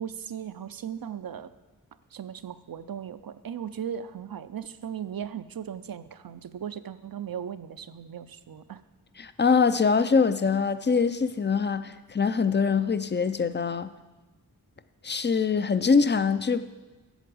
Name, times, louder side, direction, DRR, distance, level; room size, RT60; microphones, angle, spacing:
voice 1, 0.0-1.5 2.1-8.8, right 8 dB, 65° right, 0.6 m, -37 dB
voice 2, 9.2-13.9 15.0-16.6, left 5 dB, 30° left, 0.5 m, -23 dB
8.2 x 7.7 x 7.7 m
wide cardioid pair, 65°, 38 cm